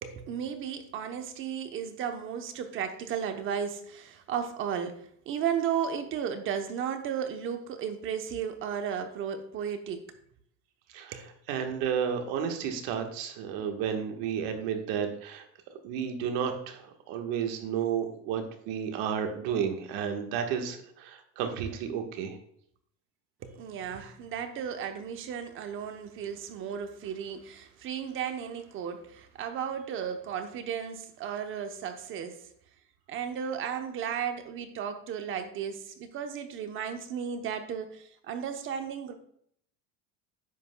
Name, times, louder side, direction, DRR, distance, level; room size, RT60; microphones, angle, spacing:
voice 1, 0.0-10.0 11.1-11.3 23.4-32.5 33.1-39.1, right 8 dB, 45° right, 0.8 m, -34 dB
voice 2, 10.9-15.5 15.8-22.4, right 7 dB, 75° right, 1.4 m, -32 dB
10.0 x 8.0 x 2.2 m
cardioid pair, 140°, 30 cm